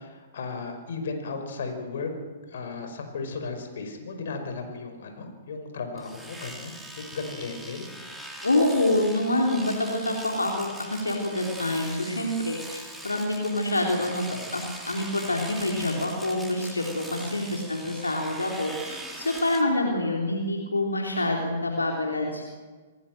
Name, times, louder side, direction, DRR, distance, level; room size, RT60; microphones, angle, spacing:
voice 1, 0.0-2.1 2.5-7.9 17.3-17.6, left 4 dB, 60° left, 5 dB, 5.2 m, -35 dB
Domestic sounds home sounds, 6.0-19.6, right 1 dB, ahead, 3.5 m, -41 dB
voice 2, 8.4-22.4, left 1 dB, 80° left, 0 dB, 3.6 m, -27 dB
26.5 x 18.5 x 7.8 m, 1.4 s
figure-of-eight pair, 115°, 0 cm